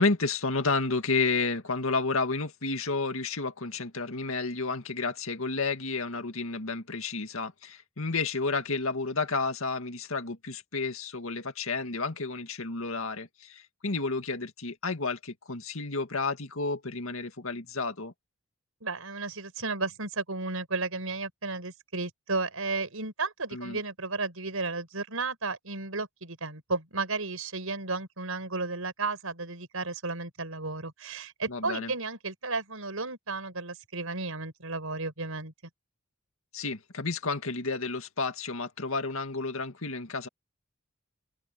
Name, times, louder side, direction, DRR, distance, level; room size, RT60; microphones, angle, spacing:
voice 1, 0.0-18.1 23.5-23.8 31.5-31.9 36.5-40.3, left 3 dB, 70° left, 2.1 m, -31 dB
voice 2, 18.8-35.5, right 3 dB, 75° right, 5.4 m, -33 dB
open air
head